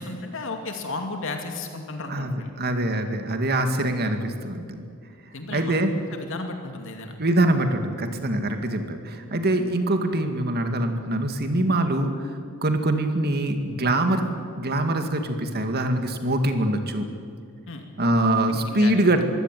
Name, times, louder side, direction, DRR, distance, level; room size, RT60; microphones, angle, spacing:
voice 1, 0.0-2.5 5.3-5.8 6.1-7.1 17.7-17.8 18.5-18.9, left 3 dB, 65° left, 4 dB, 2.5 m, -34 dB
voice 2, 2.1-4.8 5.5-5.9 7.2-12.3 12.6-14.2 14.6-17.1 18.0-19.2, right 1 dB, 50° right, 6 dB, 2.1 m, -24 dB
23.0 x 16.5 x 9.2 m, 2.3 s
head